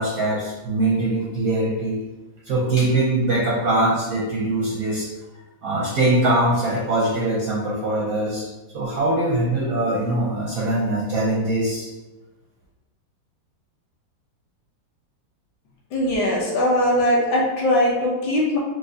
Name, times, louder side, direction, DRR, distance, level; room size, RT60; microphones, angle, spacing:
voice 1, 0.0-2.0 2.4-5.1 5.6-8.5 8.7-11.9, right 2 dB, 70° right, -4 dB, 0.8 m, -22 dB
voice 2, 15.9-18.6, left 1 dB, 70° left, -3 dB, 1.2 m, -20 dB
4.6 x 2.1 x 2.6 m, 1.1 s
omnidirectional pair, 2.0 m